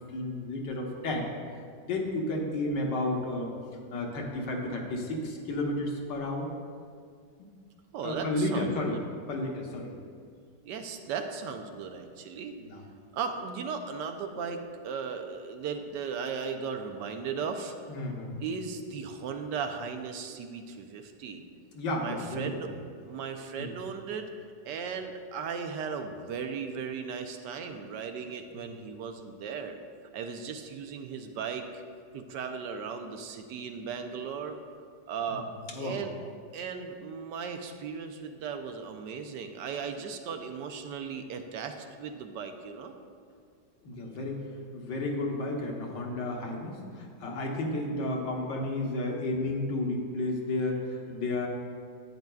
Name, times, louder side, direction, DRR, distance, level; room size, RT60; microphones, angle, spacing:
voice 1, 0.1-1.3 1.9-3.5 3.9-6.5 8.0-9.0 9.3-9.9 12.6-12.8 17.9-18.4 21.7-22.7 23.6-23.7 28.5-28.7 35.3-36.0 43.8-44.4 44.7-51.5, left 2 dB, 85° left, 0 dB, 1.7 m, -32 dB
voice 2, 7.9-9.0 10.6-12.5 13.1-17.7 18.4-21.4 22.0-22.7 23.1-24.3 24.6-29.8 30.1-31.8 32.1-34.6 35.1-35.5 35.8-36.2 36.5-42.9, right 6 dB, 85° right, 6 dB, 1.3 m, -37 dB
10.5 x 8.9 x 2.3 m, 2.1 s
omnidirectional pair, 1.9 m